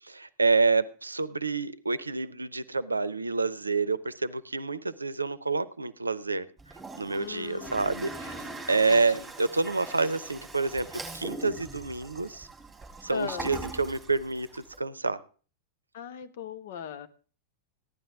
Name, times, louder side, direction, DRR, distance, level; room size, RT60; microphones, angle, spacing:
voice 1, 0.0-6.5 7.0-8.3 8.7-12.5 13.0-15.2, right 3 dB, 80° right, 17 dB, 0.6 m, -28 dB
Toilet flush, 6.6-14.8, right 3 dB, 10° right, 3.3 m, -42 dB
voice 2, 7.2-9.3 13.1-13.5 15.9-17.1, left 9 dB, 55° left, 9 dB, 1.1 m, -40 dB
15.0 x 11.5 x 3.5 m, 0.38 s
figure-of-eight pair, 90°, 0 cm